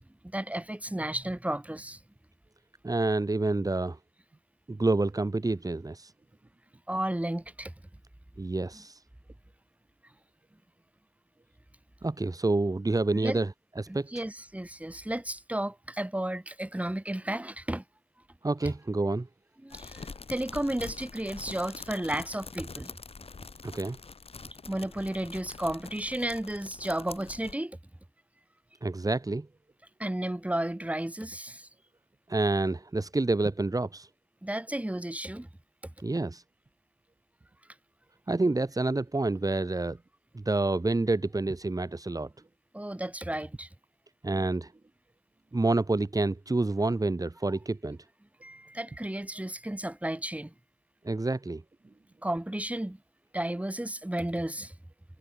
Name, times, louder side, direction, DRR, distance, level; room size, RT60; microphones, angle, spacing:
voice 1, 0.2-2.0 6.9-7.7 13.1-13.4 13.9-17.8 19.6-22.9 24.7-27.8 30.0-31.7 34.4-35.5 42.7-43.7 48.4-50.5 52.2-53.0 53.3-54.7, right 1 dB, 10° right, 6.3 m, -33 dB
voice 2, 2.8-4.0 4.7-6.1 8.4-9.0 12.0-13.5 13.8-14.1 18.4-19.3 23.6-24.0 28.8-29.5 32.3-34.1 36.0-36.4 38.3-40.0 40.3-42.3 44.2-44.7 45.5-48.0 51.0-51.6, right 2 dB, 35° right, 4.9 m, -28 dB
sound 1, 19.7-27.5, left 4 dB, 65° left, 7.5 m, -45 dB
wide cardioid pair, 85°, 11 cm